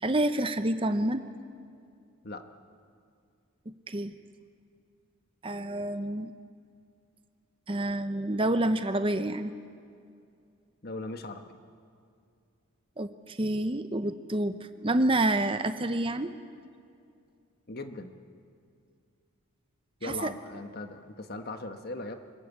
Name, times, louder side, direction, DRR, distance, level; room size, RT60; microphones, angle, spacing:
voice 1, 0.0-1.2 3.9-4.1 5.4-6.3 7.7-9.5 13.0-14.6 14.8-16.3 20.0-20.3, right 1 dB, 25° right, 10 dB, 0.7 m, -28 dB
voice 2, 10.8-11.4 17.7-18.2 20.0-22.1, left 2 dB, 45° left, 7 dB, 1.4 m, -39 dB
25.0 x 21.5 x 8.4 m, 2.4 s
head